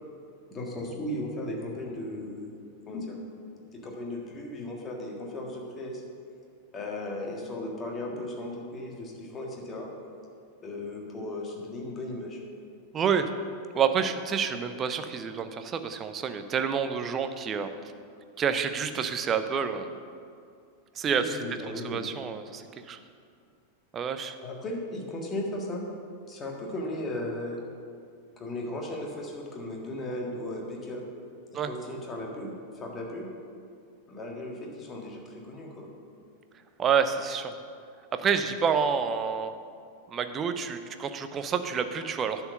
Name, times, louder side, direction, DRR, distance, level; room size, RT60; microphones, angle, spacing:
voice 1, 0.5-2.5 2.9-3.2 3.7-6.0 6.7-9.9 10.6-12.4 21.0-22.0 24.4-25.8 26.3-27.6 28.4-31.0 31.6-33.3 34.1-35.9, left 1 dB, 25° left, 0 dB, 1.7 m, -36 dB
voice 2, 12.9-13.3 13.7-17.7 18.4-19.9 21.0-21.4 21.7-23.0 23.9-24.4 31.5-31.7 36.8-37.5 38.1-39.5 40.1-42.5, right 6 dB, 25° right, 9 dB, 0.6 m, -28 dB
10.5 x 4.6 x 6.5 m, 2.3 s
figure-of-eight pair, 90°, 0 cm